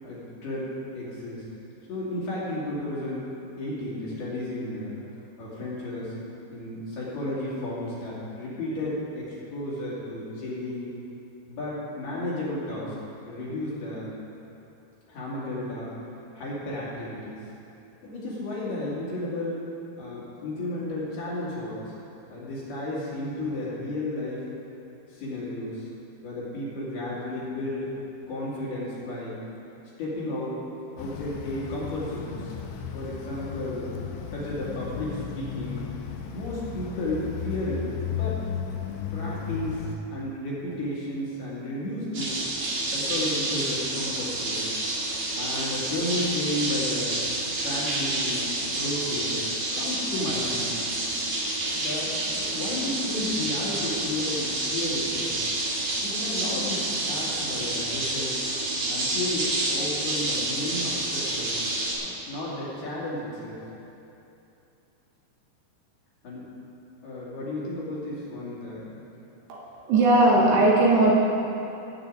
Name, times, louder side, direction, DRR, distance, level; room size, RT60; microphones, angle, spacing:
voice 1, 0.0-1.4 1.9-3.2 3.6-4.9 5.4-6.2 6.5-10.9 11.5-12.9 13.2-14.1 15.1-15.9 16.3-17.4 18.0-19.6 20.0-22.0 22.3-24.4 25.1-25.9 26.2-27.9 28.3-29.4 30.0-30.6 31.0-32.6 32.9-34.0 34.3-35.8 36.3-38.4 39.1-42.4 42.9-44.7 45.4-47.2 47.6-49.4 49.7-50.7 51.7-55.3 56.0-58.5 58.9-61.6 62.0-63.6 66.2-66.5 67.0-68.9, left 1 dB, 60° left, -7 dB, 4.3 m, -33 dB
sound 1, 31.0-39.9, left 7 dB, 80° left, 3.1 m, -35 dB
sound 2, 42.1-62.0, right 2 dB, 50° right, 2.6 m, -29 dB
voice 2, 69.5-71.1, right 2 dB, 70° right, -3 dB, 3.2 m, -19 dB
17.0 x 8.9 x 4.0 m, 2.9 s
omnidirectional pair, 5.2 m